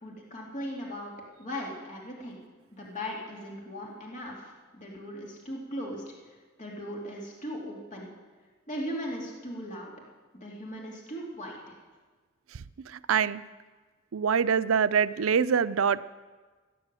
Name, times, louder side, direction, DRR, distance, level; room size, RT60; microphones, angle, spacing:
voice 1, 0.0-1.1 1.4-2.4 2.8-6.1 6.6-8.1 8.7-9.9 10.3-11.7, equal, 35° left, -2 dB, 2.7 m, -38 dB
voice 2, 12.9-13.4 14.1-16.0, right 6 dB, 80° right, 16 dB, 0.5 m, -24 dB
16.5 x 9.6 x 7.6 m, 1.4 s
head